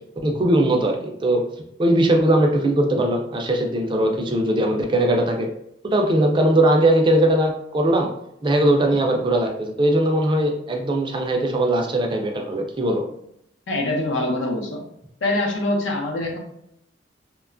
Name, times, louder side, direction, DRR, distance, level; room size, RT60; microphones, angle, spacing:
voice 1, 0.2-1.4 1.8-5.5 5.8-8.1 8.4-13.0, right 1 dB, 25° right, 2 dB, 0.3 m, -20 dB
voice 2, 13.7-14.8 15.2-16.4, left 1 dB, 90° left, 1 dB, 0.6 m, -24 dB
2.9 x 2.2 x 2.4 m, 0.75 s
head